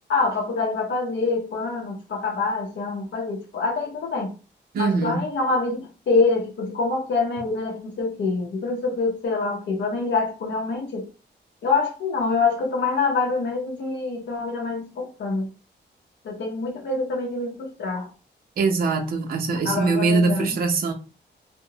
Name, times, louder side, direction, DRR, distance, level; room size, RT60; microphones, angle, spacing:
voice 1, 0.1-4.3 4.8-11.1 11.6-15.5 16.2-18.1 19.6-20.6, left 3 dB, 80° left, 0.6 m, -25 dB
voice 2, 4.7-5.2 18.6-20.9, right 4 dB, 55° right, 0.5 m, -22 dB
2.8 x 2.0 x 2.6 m
wide cardioid pair, 175°, 18 cm